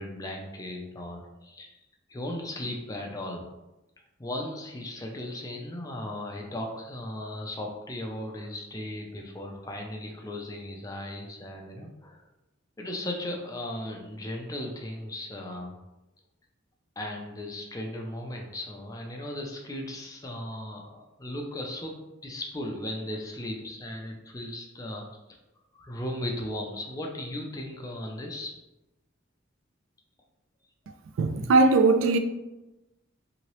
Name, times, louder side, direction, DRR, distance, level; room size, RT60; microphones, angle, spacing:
voice 1, 0.0-1.7 2.1-3.5 4.2-12.2 12.8-15.7 17.0-25.0 25.8-28.5, left 1 dB, 15° left, 0.4 m, -36 dB
voice 2, 31.2-32.2, right 3 dB, 80° right, 0.3 m, -20 dB
2.9 x 2.7 x 3.0 m
head